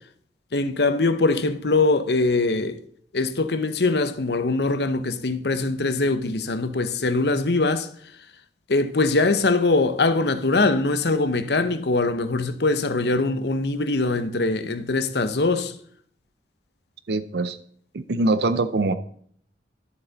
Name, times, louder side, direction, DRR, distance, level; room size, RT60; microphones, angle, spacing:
voice 1, 0.5-2.8 3.1-7.9 8.7-15.7, left 3 dB, 65° left, 0.8 m, -22 dB
voice 2, 17.1-17.6 17.9-18.9, right 2 dB, 65° right, 0.5 m, -23 dB
12.0 x 7.2 x 4.0 m
head